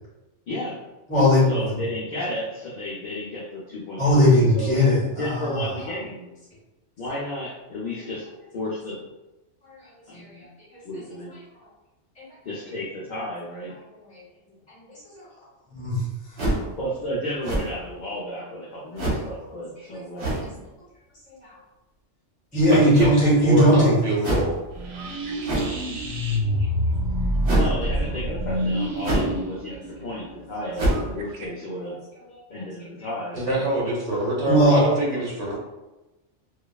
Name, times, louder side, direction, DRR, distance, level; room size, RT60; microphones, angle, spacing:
voice 1, 0.5-0.8 1.5-4.8 5.2-6.3 7.0-8.3 8.5-9.1 10.1-10.5 10.8-11.3 12.4-13.7 16.8-20.6 27.5-32.0 32.5-33.6 35.1-35.3, left 1 dB, 55° left, -6 dB, 0.5 m, -33 dB
voice 2, 1.1-1.7 4.0-5.6 9.6-9.8 10.1-10.4 12.2-12.3 14.1-14.2 15.0-15.3 15.7-16.0 21.4-21.5 22.5-24.0 26.6-26.7 34.5-34.8, equal, 10° left, -8 dB, 0.6 m, -19 dB
sound 1, 16.4-16.7 17.4-17.9 19.0-19.3 20.2-20.5 22.9-23.4 24.2-24.6 25.4-25.8 27.4-27.8 29.0-29.4 29.7-29.8 30.8-31.1, right 1 dB, 60° right, 1.1 m, -25 dB
voice 3, 22.7-23.1 23.4-24.5 33.4-35.6, right 2 dB, 40° right, -4 dB, 0.9 m, -24 dB
sound 2, 24.7-31.5, equal, 85° right, 0.9 m, -27 dB
3.0 x 2.3 x 2.3 m, 1.0 s
omnidirectional pair, 1.3 m